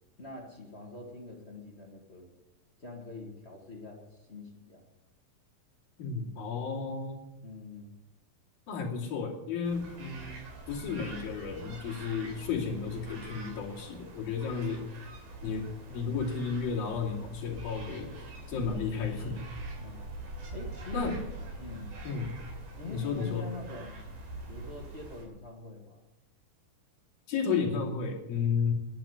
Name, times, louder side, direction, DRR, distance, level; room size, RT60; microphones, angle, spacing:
voice 1, 0.2-2.3 2.8-4.8 7.4-8.0 19.8-20.0 20.5-21.2 21.6-22.0 22.8-24.0 24.5-26.0, left 3 dB, 40° left, 0 dB, 0.9 m, -44 dB
voice 2, 6.0-7.3 8.7-10.4 10.7-14.8 15.4-18.1 18.5-19.4 20.9-21.2 22.0-22.3 22.9-23.5 27.3-28.7, left 5 dB, 70° left, -2 dB, 4.4 m, -33 dB
sound 1, 9.6-25.2, right 2 dB, 60° right, 4.9 m, -44 dB
12.0 x 10.0 x 9.3 m, 0.99 s
omnidirectional pair, 4.3 m